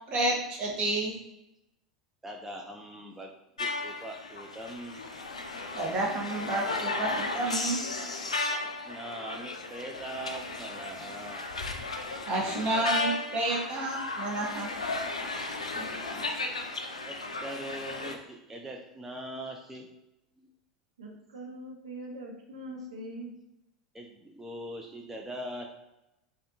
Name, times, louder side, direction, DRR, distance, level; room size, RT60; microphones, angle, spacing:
voice 1, 0.1-1.1 5.7-7.8 12.3-14.7 15.7-15.8 16.1-16.2, right 2 dB, 40° right, -1 dB, 0.9 m, -30 dB
voice 2, 2.2-3.3 3.6-5.0 8.6-11.5 11.7-11.8 15.7-16.4 17.0-19.9 20.4-20.5 23.9-25.7, right 1 dB, 10° right, 1 dB, 0.3 m, -42 dB
sound 1, 3.6-18.1, left 3 dB, 80° left, 0.3 m, -35 dB
voice 3, 21.0-23.3, right 1 dB, 70° right, -1 dB, 0.5 m, -42 dB
3.3 x 2.3 x 2.6 m, 0.91 s
figure-of-eight pair, 85°, 3 cm